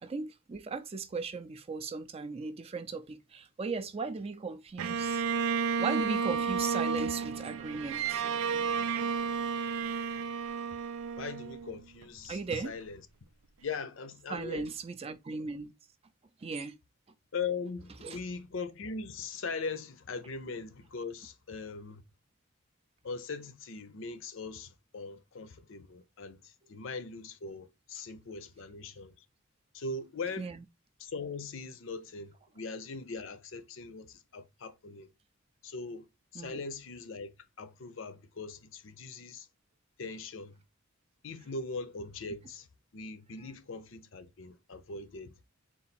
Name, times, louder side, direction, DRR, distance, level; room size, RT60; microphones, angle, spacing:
voice 1, 0.0-5.2 5.8-8.2 12.3-12.7 14.3-15.7 16.4-16.8 18.0-18.2 30.4-30.6 36.4-36.6, right 4 dB, 30° right, 0.4 m, -37 dB
Bowed string instrument, 4.8-12.0, right 6 dB, 90° right, 0.4 m, -32 dB
voice 2, 11.1-13.0 13.6-14.7 17.3-22.0 23.0-29.2 29.7-30.5 31.0-35.1 35.6-36.1 36.3-39.5 40.0-40.6 41.2-42.7 42.9-45.3, left 4 dB, 65° left, 0.6 m, -40 dB
3.9 x 2.5 x 4.1 m
head